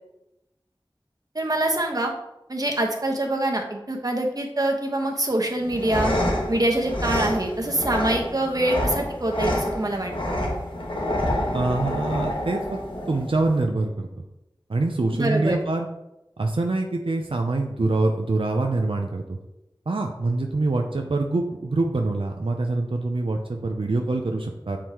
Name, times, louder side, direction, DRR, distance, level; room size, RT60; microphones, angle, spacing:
voice 1, 1.3-2.1 2.5-6.1 6.5-10.4 15.1-15.6, right 1 dB, 45° right, 1 dB, 1.2 m, -25 dB
sound 1, 5.6-13.6, left 1 dB, 70° left, 1.4 m, -28 dB
voice 2, 11.5-12.8 13.1-14.1 14.7-15.9 16.4-19.4 19.9-24.8, right 2 dB, 85° right, 3 dB, 0.6 m, -25 dB
7.4 x 4.8 x 3.0 m, 0.89 s
wide cardioid pair, 40°, 9 cm